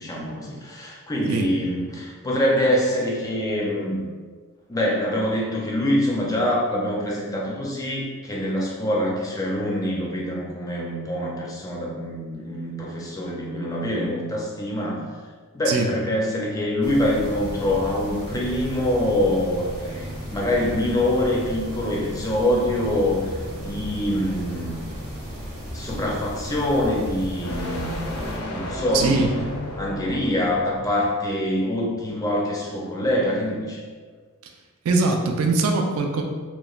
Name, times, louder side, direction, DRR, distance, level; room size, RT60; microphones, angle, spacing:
voice 1, 0.0-4.0 4.7-15.0 15.5-24.8 25.7-28.1 28.5-29.3 29.8-33.8, left 1 dB, 15° left, -3 dB, 0.3 m, -25 dB
sound 1, 16.8-28.4, equal, 35° right, 0.7 m, -35 dB
sound 2, 17.5-31.0, left 1 dB, 75° left, 0.5 m, -37 dB
voice 2, 28.9-29.3 34.4-34.5 34.8-36.2, right 3 dB, 65° right, 3 dB, 0.3 m, -22 dB
2.9 x 2.1 x 2.3 m, 1.5 s
head